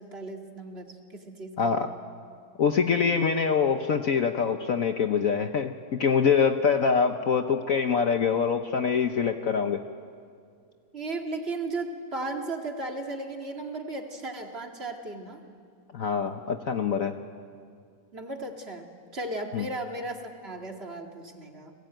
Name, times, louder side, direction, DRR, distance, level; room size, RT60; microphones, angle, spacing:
voice 1, 0.0-1.9 10.9-15.4 18.1-21.7, right 2 dB, 35° right, 3 dB, 2.4 m, -36 dB
voice 2, 1.6-1.9 2.6-9.8 15.9-17.1 19.5-19.7, left 6 dB, 55° left, 7 dB, 1.2 m, -24 dB
30.0 x 20.5 x 9.1 m, 2.2 s
omnidirectional pair, 2.0 m